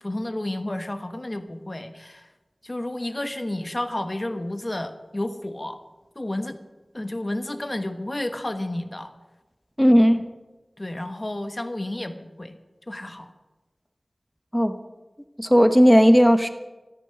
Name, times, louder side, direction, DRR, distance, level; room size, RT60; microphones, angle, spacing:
voice 1, 0.0-2.3 2.6-5.8 6.2-6.6 6.9-9.1 10.8-12.6 12.9-13.3, left 1 dB, 35° left, 8 dB, 1.1 m, -31 dB
voice 2, 9.8-10.2 14.5-14.8 15.4-16.5, equal, ahead, 8 dB, 1.0 m, -15 dB
14.0 x 13.0 x 5.7 m, 1.1 s
wide cardioid pair, 50°, 0 cm